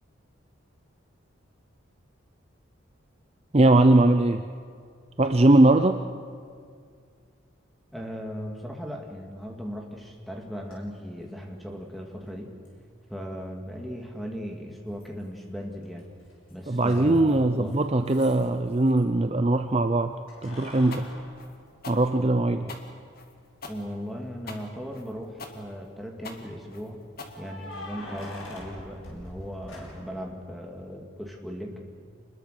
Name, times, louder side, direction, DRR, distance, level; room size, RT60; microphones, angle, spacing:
voice 1, 3.5-4.4 5.2-6.0 16.7-20.1 20.4-21.2 21.9-22.7, right 2 dB, 30° right, 8 dB, 0.6 m, -20 dB
voice 2, 7.9-12.5 13.1-16.0 16.5-17.7 22.6-22.8 23.7-27.0 27.4-31.8, equal, ahead, 1 dB, 2.4 m, -37 dB
Keys jangling, 10.7-10.8 12.6-12.7 15.0-15.5 15.8-19.0 20.3-22.4 22.9-23.0 24.8-25.3 27.3-30.2, left 1 dB, 75° left, 6.0 m, -44 dB
sound 1, 20.9-28.0, left 3 dB, 45° left, 2.1 m, -43 dB
26.5 x 21.0 x 6.7 m, 2.2 s
head